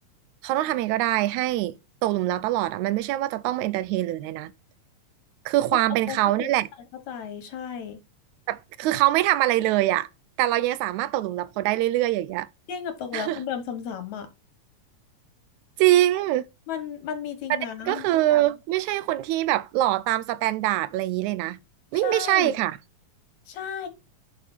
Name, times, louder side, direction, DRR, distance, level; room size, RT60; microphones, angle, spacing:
voice 1, 0.4-1.8 2.0-4.5 5.5-6.7 8.5-10.1 10.4-12.5 13.1-13.4 15.8-16.4 17.5-17.6 17.9-21.6 21.9-22.8, right 15 dB, 85° right, 2.0 m, -23 dB
voice 2, 6.1-6.5 7.1-8.0 12.7-14.3 16.7-18.1 22.0-22.6 23.5-23.9, left 8 dB, 75° left, 2.6 m, -34 dB
7.4 x 4.6 x 4.4 m
omnidirectional pair, 3.3 m